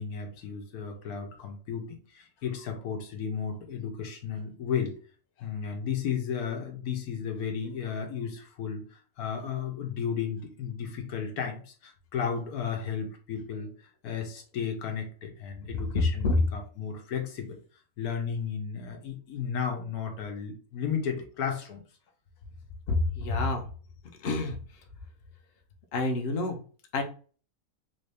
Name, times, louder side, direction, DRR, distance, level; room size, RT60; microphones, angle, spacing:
voice 1, 0.0-5.0 5.4-13.7 14.0-17.6 18.0-21.8, left 7 dB, 85° left, 3 dB, 1.3 m, -34 dB
voice 2, 22.9-23.6 24.2-24.6 25.9-26.6 26.9-27.0, left 3 dB, 50° left, 3 dB, 0.8 m, -27 dB
3.6 x 2.7 x 3.3 m, 0.40 s
omnidirectional pair, 1.6 m